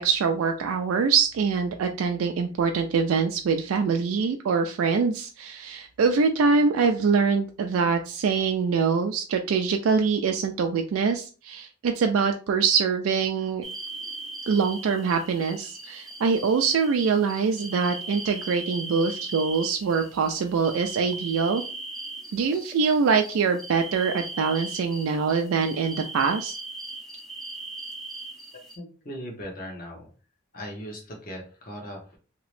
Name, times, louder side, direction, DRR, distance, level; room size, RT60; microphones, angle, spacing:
voice 1, 0.0-13.6 14.5-21.6 22.3-26.5, right 5 dB, 85° right, 5 dB, 0.3 m, -24 dB
sound 1, 13.6-28.8, right 2 dB, ahead, 0.5 m, -39 dB
voice 2, 28.8-30.1 30.5-32.2, equal, 45° left, 0 dB, 1.1 m, -38 dB
3.0 x 2.8 x 3.1 m, 0.36 s
head